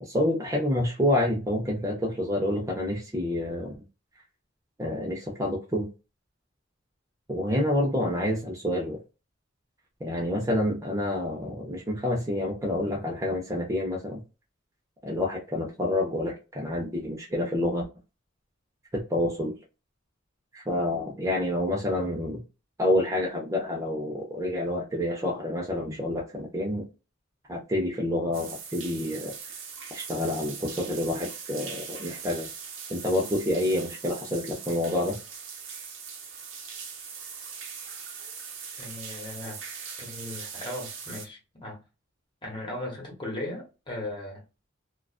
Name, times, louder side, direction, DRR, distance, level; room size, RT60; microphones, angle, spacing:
voice 1, 0.0-3.7 4.8-5.9 7.3-9.0 10.0-14.2 15.0-17.9 18.9-19.6 20.5-22.4 22.8-26.9 27.5-29.3 29.9-32.5 32.9-35.2, left 1 dB, 15° right, 0.5 m, -28 dB
sound 1, 28.3-41.3, right 6 dB, 85° right, 0.7 m, -41 dB
voice 2, 38.8-39.6 40.0-41.8 42.4-44.4, left 1 dB, 25° left, 1.1 m, -37 dB
2.4 x 2.3 x 2.3 m
head